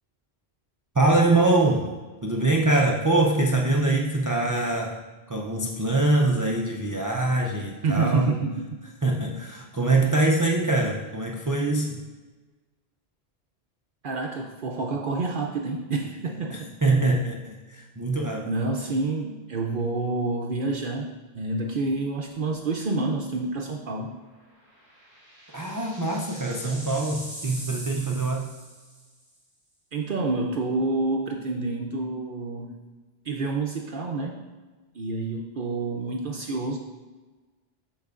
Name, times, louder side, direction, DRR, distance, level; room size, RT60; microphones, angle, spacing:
voice 1, 1.0-1.9 2.2-5.0 5.3-8.4 9.0-12.0 16.5-18.5 25.5-28.5, right 2 dB, 30° right, -1 dB, 0.3 m, -24 dB
voice 2, 7.8-8.8 14.0-16.7 18.4-21.1 21.3-24.1 29.9-32.7 33.2-34.4 34.9-36.8, right 3 dB, 60° right, 1 dB, 0.7 m, -28 dB
sound 1, 22.3-22.7 23.0-23.1 24.6-29.2, right 1 dB, 15° right, 2.1 m, -42 dB
12.0 x 4.6 x 2.4 m, 1.3 s
omnidirectional pair, 1.1 m